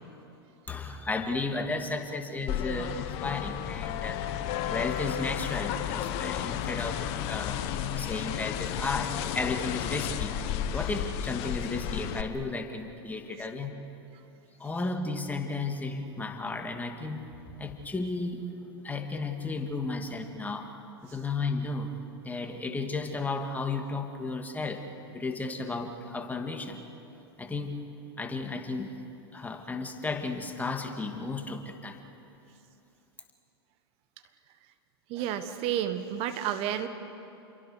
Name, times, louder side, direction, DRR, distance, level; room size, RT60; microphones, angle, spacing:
voice 1, 0.7-4.2 4.7-7.6 7.9-10.4 10.7-13.7 14.6-17.3 17.6-18.5 18.8-20.7 21.0-24.8 25.1-26.8 27.4-27.9 28.2-29.0 29.3-32.0, left 3 dB, 10° left, 4 dB, 2.3 m, -34 dB
sound 1, 2.5-12.2, left 10 dB, 50° left, 1.5 m, -32 dB
voice 2, 35.1-36.9, right 10 dB, 45° right, 9 dB, 1.5 m, -31 dB
29.5 x 23.0 x 6.6 m, 2.9 s
hypercardioid pair, 95°, 13 cm